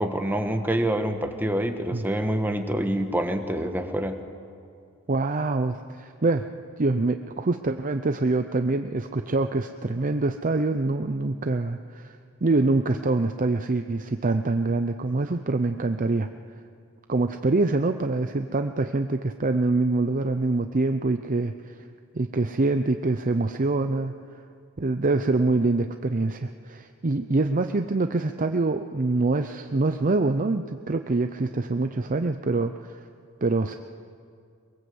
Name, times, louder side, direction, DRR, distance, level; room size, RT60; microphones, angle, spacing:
voice 1, 0.0-4.2, right 1 dB, 10° right, 5 dB, 1.5 m, -26 dB
voice 2, 5.1-6.5 6.8-16.3 17.1-21.7 22.1-24.1 24.8-33.0 33.4-33.8, right 3 dB, 40° right, 7 dB, 0.6 m, -25 dB
22.5 x 22.0 x 7.9 m, 2.3 s
head